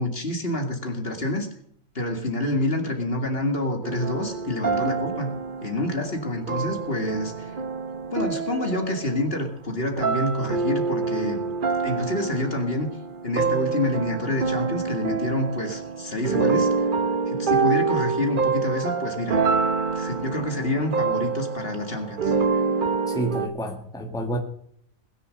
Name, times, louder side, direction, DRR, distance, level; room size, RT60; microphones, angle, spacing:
voice 1, 0.0-1.5 1.9-5.3 5.6-7.6 8.1-11.5 11.8-12.9 13.2-16.7 17.3-19.4 19.9-22.3, left 1 dB, 45° left, 5 dB, 2.3 m, -27 dB
sound 1, 3.8-9.6 10.0-23.5, right 5 dB, 40° right, 1.0 m, -26 dB
voice 2, 23.1-24.4, right 1 dB, 5° left, 4 dB, 1.6 m, -29 dB
20.5 x 7.1 x 6.4 m, 0.67 s
omnidirectional pair, 1.4 m